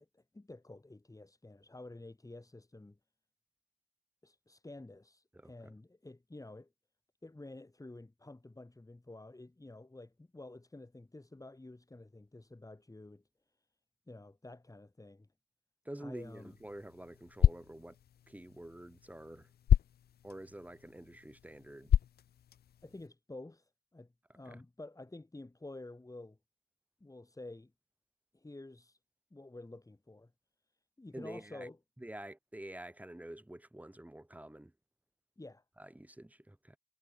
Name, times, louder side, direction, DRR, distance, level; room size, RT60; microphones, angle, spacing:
voice 1, 0.0-3.0 4.2-6.7 7.2-13.2 14.1-15.3 16.0-16.5 22.8-26.4 27.0-27.7 28.3-29.0 29.3-30.3 31.0-31.8 35.4-35.6, left 2 dB, 20° left, 4.4 m, -50 dB
voice 2, 15.8-18.0 18.3-19.5 20.2-21.9 24.5-24.6 31.1-31.7 32.0-34.7 35.8-36.8, right 1 dB, 10° right, 2.1 m, -48 dB
sound 1, 16.2-23.1, left 10 dB, 85° left, 0.4 m, -33 dB
wide cardioid pair, 90°, 16 cm